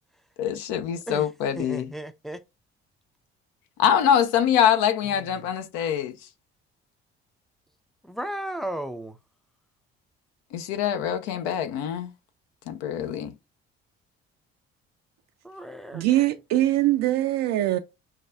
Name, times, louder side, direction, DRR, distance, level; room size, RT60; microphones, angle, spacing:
voice 1, 0.4-1.9 3.8-6.1 10.5-12.1 12.7-13.3, left 9 dB, 70° left, 0.5 m, -24 dB
voice 2, 1.6-2.4 5.1-5.3 8.0-9.2 15.4-16.0, right 1 dB, ahead, 0.4 m, -35 dB
voice 3, 15.9-17.8, right 14 dB, 60° right, 0.4 m, -22 dB
6.3 x 2.3 x 2.2 m
hypercardioid pair, 55°, 30 cm